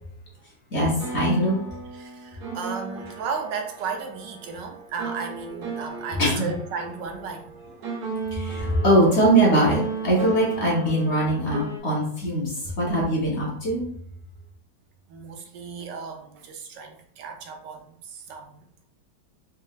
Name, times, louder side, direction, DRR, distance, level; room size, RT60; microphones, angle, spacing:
voice 1, 0.7-1.6 6.2-6.5 8.3-13.8, right 1 dB, 45° left, -4 dB, 1.3 m, -22 dB
sound 1, 1.0-11.8, right 4 dB, 65° right, 1.4 m, -36 dB
voice 2, 1.9-7.5 15.1-18.9, right 5 dB, 80° right, 4 dB, 1.3 m, -35 dB
4.2 x 3.6 x 2.3 m, 0.62 s
omnidirectional pair, 1.9 m